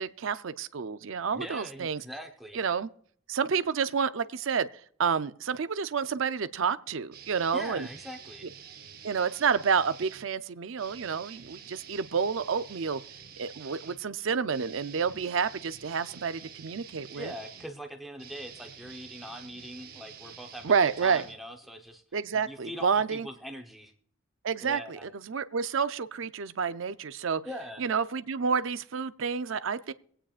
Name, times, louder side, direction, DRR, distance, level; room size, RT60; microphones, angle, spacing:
voice 1, 0.0-2.0 2.5-2.9 3.3-4.7 5.0-7.9 9.0-13.0 13.4-17.3 20.6-21.2 22.1-23.3 24.4-27.4 27.8-29.9, right 6 dB, 70° right, 13 dB, 0.5 m, -29 dB
voice 2, 1.3-2.6 7.5-8.5 17.1-20.7 21.0-22.0 22.4-23.9 24.6-25.0 27.4-27.8, equal, ahead, 2 dB, 0.8 m, -42 dB
sound 1, 7.1-10.3 10.7-21.9, right 7 dB, 45° right, 0.8 m, -48 dB
23.5 x 8.8 x 2.4 m, 0.62 s
head